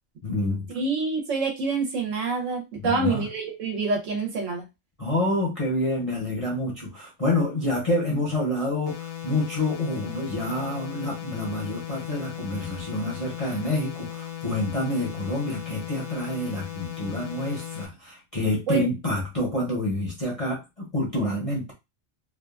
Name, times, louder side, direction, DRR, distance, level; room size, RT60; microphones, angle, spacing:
voice 1, 0.2-0.7 2.8-3.3 5.0-21.7, left 1 dB, 35° left, 0.6 m, -28 dB
voice 2, 0.7-4.6 18.7-18.9, right 4 dB, 70° right, 1.1 m, -26 dB
sound 1, 8.9-17.9, left 11 dB, 75° left, 1.0 m, -37 dB
2.6 x 2.3 x 2.3 m
omnidirectional pair, 1.5 m